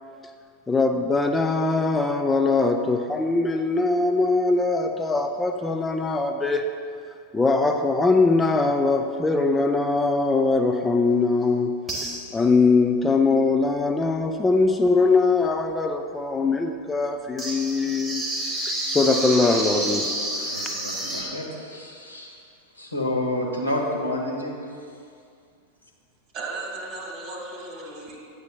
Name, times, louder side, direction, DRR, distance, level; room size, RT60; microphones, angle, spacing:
voice 1, 0.7-6.7 7.3-11.8 12.3-18.2 18.7-20.1, left 3 dB, 10° left, 5 dB, 0.3 m, -21 dB
sound 1, 11.4-11.5 11.9-12.6 17.4-21.2, right 1 dB, 15° right, 1.3 m, -29 dB
voice 2, 20.3-22.4 22.7-24.6, left 1 dB, 80° left, -2 dB, 1.0 m, -29 dB
voice 3, 26.3-28.2, right 2 dB, 35° right, -2 dB, 1.7 m, -35 dB
9.3 x 6.5 x 2.3 m, 2.3 s
figure-of-eight pair, 90°, 0 cm